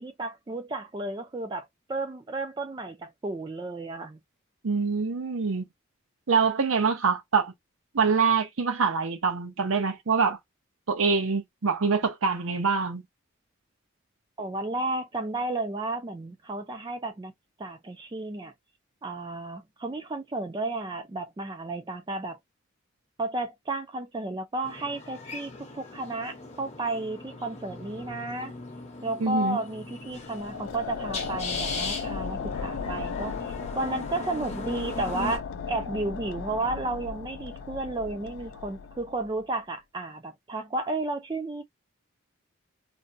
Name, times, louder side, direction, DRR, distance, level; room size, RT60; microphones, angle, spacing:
voice 1, 0.0-4.2 14.4-17.3 17.6-18.5 19.0-22.4 23.2-28.5 29.0-41.6, right 2 dB, 20° right, 0.3 m, -33 dB
voice 2, 4.6-5.7 6.3-7.5 7.9-10.4 10.9-13.0 29.2-29.6, right 5 dB, 90° right, 0.7 m, -25 dB
sound 1, 24.6-35.4, left 3 dB, 30° left, 0.7 m, -39 dB
sound 2, 30.1-39.4, left 5 dB, 80° left, 0.4 m, -36 dB
2.6 x 2.2 x 2.5 m
head